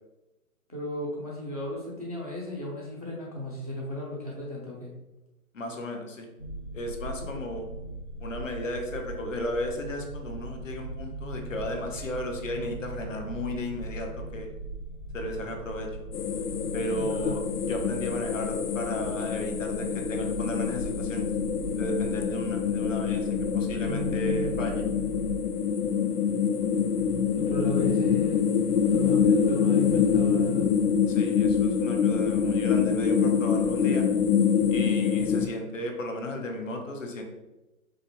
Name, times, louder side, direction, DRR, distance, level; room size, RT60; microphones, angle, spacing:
voice 1, 0.7-4.9 16.9-17.4 23.8-24.5 27.3-28.4 28.9-30.7, left 1 dB, 25° right, -4 dB, 0.5 m, -34 dB
voice 2, 5.5-6.3 6.7-7.6 8.2-14.5 15.1-16.1 16.7-21.3 21.7-23.3 23.5-24.8 31.1-34.1 34.7-37.2, left 1 dB, 55° left, 3 dB, 0.9 m, -34 dB
sound 1, 6.4-25.3, right 2 dB, 40° left, 0.4 m, -40 dB
sound 2, 16.1-35.5, left 7 dB, 90° left, 0.6 m, -25 dB
5.0 x 2.3 x 4.2 m, 1.0 s
hypercardioid pair, 175°, 45 cm